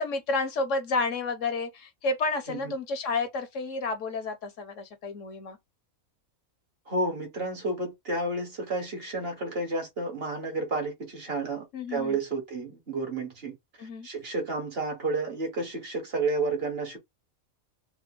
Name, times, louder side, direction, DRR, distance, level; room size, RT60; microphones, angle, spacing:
voice 1, 0.0-5.6 11.7-12.2 13.8-14.1, left 3 dB, 65° left, 1.1 m, -30 dB
voice 2, 6.9-17.0, right 3 dB, 45° right, 1.4 m, -31 dB
3.4 x 2.1 x 3.6 m
omnidirectional pair, 1.5 m